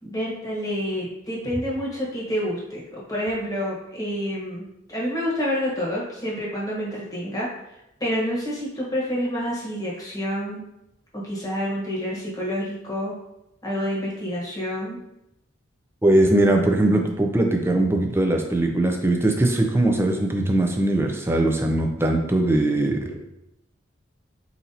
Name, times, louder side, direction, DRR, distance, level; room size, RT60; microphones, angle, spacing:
voice 1, 0.0-4.6 4.9-7.5 8.0-10.6 11.1-13.1 13.6-15.0, equal, 20° left, -5 dB, 1.1 m, -28 dB
voice 2, 16.0-23.3, right 1 dB, 10° right, 3 dB, 0.4 m, -21 dB
4.3 x 4.0 x 2.7 m, 0.88 s
head